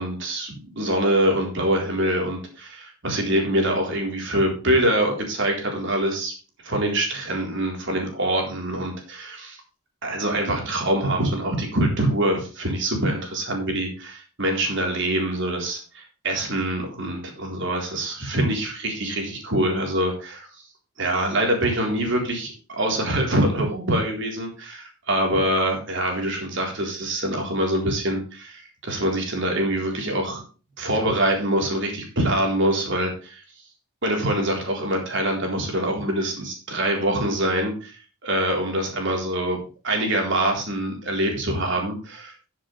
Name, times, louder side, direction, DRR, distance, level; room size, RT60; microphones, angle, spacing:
voice 1, 0.0-6.3 6.6-9.6 10.0-20.5 21.0-30.4 30.8-33.4 34.0-42.5, right 1 dB, 55° right, 1 dB, 4.0 m, -24 dB
13.5 x 7.5 x 3.4 m, 0.35 s
head